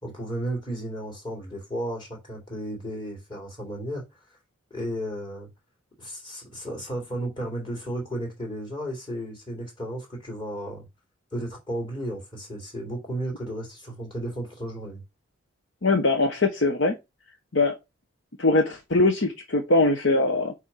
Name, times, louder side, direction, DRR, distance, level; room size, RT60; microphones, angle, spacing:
voice 1, 0.0-4.0 4.7-5.5 6.0-10.9 11.3-15.0, right 1 dB, 25° left, 3.6 m, -33 dB
voice 2, 15.8-17.0 17.5-17.8 18.4-20.5, left 2 dB, 65° left, 1.1 m, -22 dB
8.3 x 3.5 x 5.7 m
head